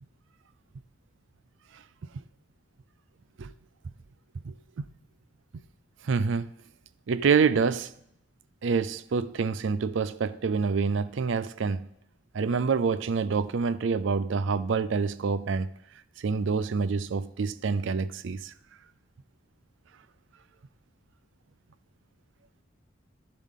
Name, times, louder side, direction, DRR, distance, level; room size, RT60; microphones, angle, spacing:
voice 1, 4.4-4.8 6.0-6.5 7.1-7.9 8.6-11.8 12.3-15.7 16.2-18.5, right 5 dB, 70° right, 0.4 m, -27 dB
12.0 x 7.3 x 3.7 m
head